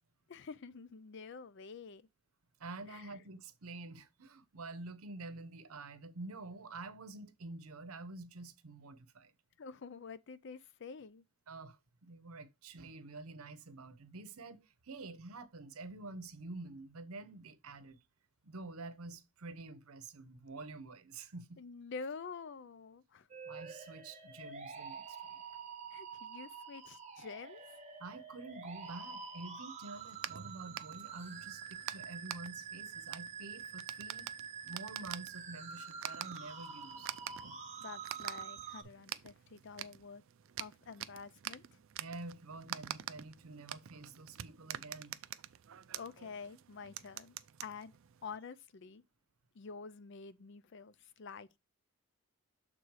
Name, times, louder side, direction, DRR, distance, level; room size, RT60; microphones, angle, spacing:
voice 1, 0.3-2.1 2.9-3.2 9.6-11.2 21.6-23.3 25.9-27.8 37.8-40.2 40.6-41.8 45.9-47.4 47.6-48.0 48.2-49.0 49.5-51.6, left 5 dB, 55° left, 0.5 m, -48 dB
voice 2, 2.6-9.3 11.5-18.0 18.4-21.6 23.4-25.4 28.0-34.3 34.6-37.1 42.0-45.2, right 3 dB, 80° right, 0.8 m, -48 dB
sound 1, 23.3-38.8, right 6 dB, 30° right, 0.9 m, -47 dB
sound 2, 29.9-48.4, right 11 dB, 60° right, 0.4 m, -47 dB
6.5 x 3.8 x 4.6 m
head